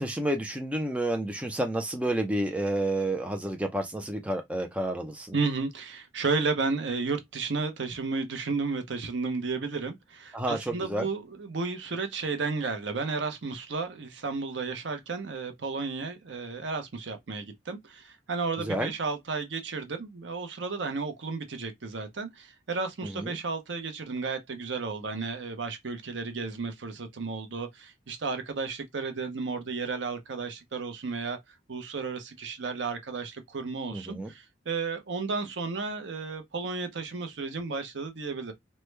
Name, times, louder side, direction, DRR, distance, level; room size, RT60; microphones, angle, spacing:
voice 1, 0.0-5.4 10.3-11.1 18.6-18.9 23.0-23.4 33.9-34.3, right 1 dB, 5° right, 0.4 m, -30 dB
voice 2, 5.3-31.4 31.7-38.5, right 4 dB, 75° right, 0.7 m, -33 dB
3.1 x 2.2 x 3.2 m
head